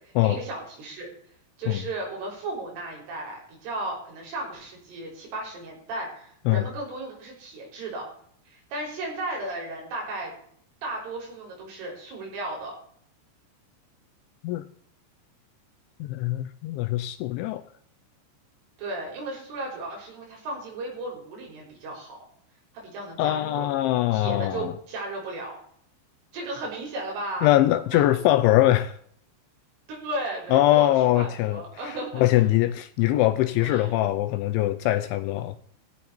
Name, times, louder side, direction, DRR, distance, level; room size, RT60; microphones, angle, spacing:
voice 1, 0.2-1.1 1.6-8.1 8.5-10.3 10.8-12.7 18.8-22.2 22.7-23.7 24.1-25.6 26.3-27.5 27.9-28.0 29.9-32.5 33.6-33.9, right 2 dB, 70° right, -1 dB, 8.3 m, -35 dB
voice 2, 16.0-17.6 23.2-24.7 27.4-28.9 30.5-35.6, left 15 dB, 80° left, 11 dB, 2.8 m, -22 dB
16.0 x 15.5 x 4.4 m, 0.63 s
omnidirectional pair, 5.9 m